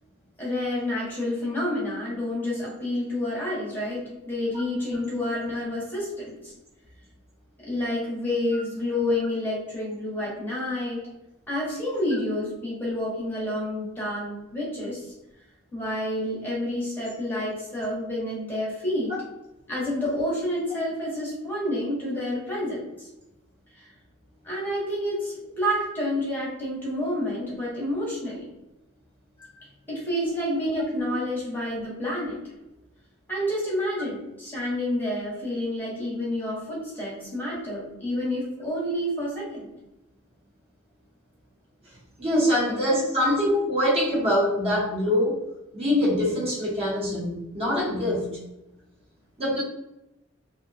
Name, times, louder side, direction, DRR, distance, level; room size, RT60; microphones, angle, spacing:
voice 1, 0.4-6.5 7.6-11.1 11.5-15.1 15.7-19.1 19.7-23.1 23.7-23.9 24.4-28.4 29.9-32.4 33.3-39.7 42.7-42.8 43.2-43.4, left 1 dB, 10° left, -5 dB, 0.8 m, -29 dB
voice 2, 42.2-45.4 45.7-48.3 49.4-49.6, left 1 dB, 30° right, -6 dB, 0.7 m, -24 dB
2.6 x 2.1 x 2.5 m, 0.94 s
head